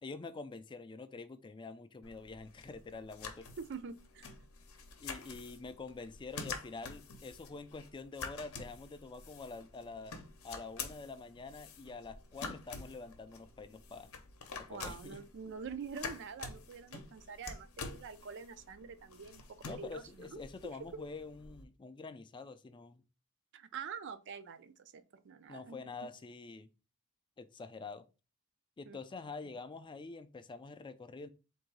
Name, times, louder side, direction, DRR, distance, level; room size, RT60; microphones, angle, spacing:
voice 1, 0.0-3.5 5.0-10.2 10.4-14.1 14.6-15.2 19.6-23.0 25.5-26.7 27.4-28.0 28.8-31.3, left 3 dB, 20° left, 0.3 m, -46 dB
sound 1, 2.0-21.6, left 4 dB, 70° left, 0.7 m, -48 dB
voice 2, 3.6-4.4 14.7-20.4 20.9-21.0 23.5-25.9 28.8-29.0 29.4-29.5, right 6 dB, 55° right, 0.4 m, -46 dB
3.7 x 2.6 x 4.6 m
head